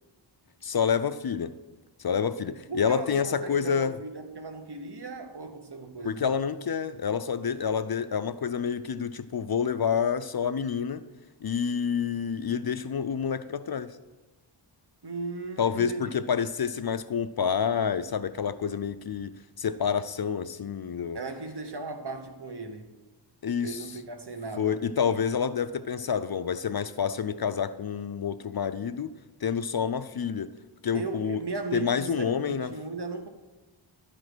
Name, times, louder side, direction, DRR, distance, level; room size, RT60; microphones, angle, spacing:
voice 1, 0.6-1.6 2.0-3.9 6.0-11.0 11.4-14.0 15.6-19.3 19.6-21.2 23.4-23.9 24.6-29.2 29.4-30.5 30.8-31.4 31.7-32.7, left 7 dB, 50° left, 0.5 m, -28 dB
voice 2, 2.4-6.2 15.0-16.1 21.1-22.9 23.6-24.8 30.9-33.3, right 3 dB, 55° right, 1.1 m, -37 dB
12.0 x 5.1 x 6.1 m
wide cardioid pair, 45°, 49 cm